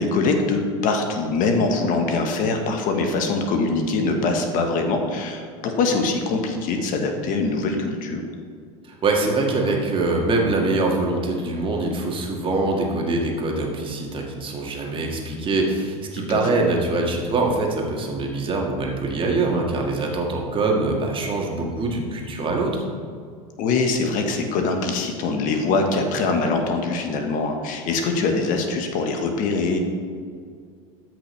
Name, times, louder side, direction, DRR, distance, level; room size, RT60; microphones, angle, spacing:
voice 1, 0.0-8.2 16.3-16.4 23.6-29.8, left 3 dB, 50° left, 4 dB, 1.3 m, -23 dB
voice 2, 8.9-22.8, right 2 dB, 30° right, 0 dB, 1.9 m, -23 dB
13.5 x 6.2 x 3.3 m, 2.2 s
hypercardioid pair, 85°, 17 cm